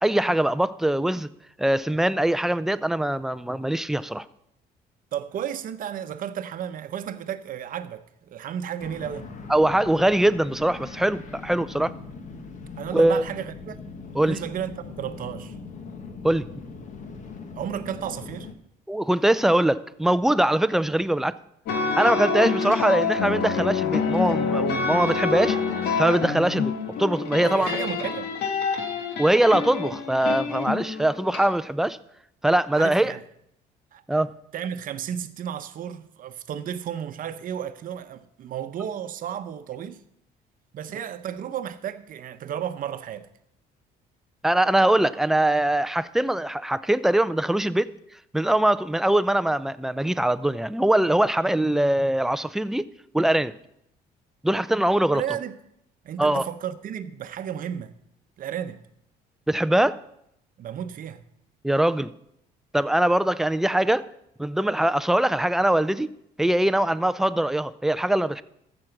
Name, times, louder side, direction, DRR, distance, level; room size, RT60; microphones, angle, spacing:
voice 1, 0.0-1.3 1.6-4.2 9.5-11.9 12.9-13.3 14.1-14.3 16.2-16.5 18.9-21.3 21.9-25.6 26.0-26.7 27.0-27.9 29.2-32.0 32.4-33.1 34.1-34.3 44.4-47.9 48.3-52.9 53.1-53.5 54.4-55.2 56.2-56.4 59.5-60.0 61.6-62.1 62.7-64.0 64.4-66.1 66.4-68.4, right 1 dB, ahead, 0.4 m, -22 dB
voice 2, 5.1-9.3 12.8-13.8 14.1-15.5 17.5-18.5 27.4-28.3 32.7-33.2 33.9-34.2 34.5-40.0 40.7-43.3 55.1-55.6 56.0-57.9 58.4-58.8 60.6-61.2, right 9 dB, 55° right, 0.8 m, -33 dB
sound 1, 8.8-18.5, left 4 dB, 45° left, 1.4 m, -40 dB
sound 2, 21.7-31.4, left 5 dB, 75° left, 1.6 m, -27 dB
14.5 x 6.2 x 5.9 m
cardioid pair, 110°, 17 cm